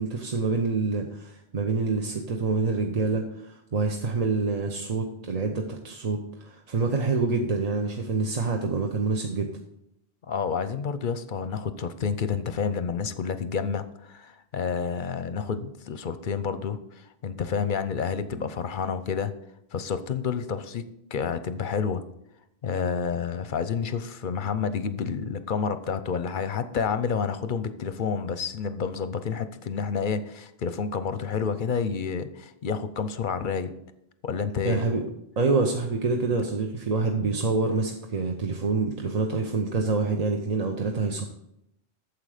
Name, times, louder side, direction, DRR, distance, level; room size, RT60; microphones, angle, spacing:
voice 1, 0.0-9.5 34.6-35.0 35.4-41.2, right 4 dB, 40° right, 3 dB, 0.8 m, -26 dB
voice 2, 10.3-19.3 19.7-22.0 22.6-33.7 34.2-34.8 36.3-36.4, left 6 dB, 55° left, 12 dB, 0.7 m, -29 dB
9.3 x 7.2 x 4.9 m, 0.79 s
omnidirectional pair, 1.2 m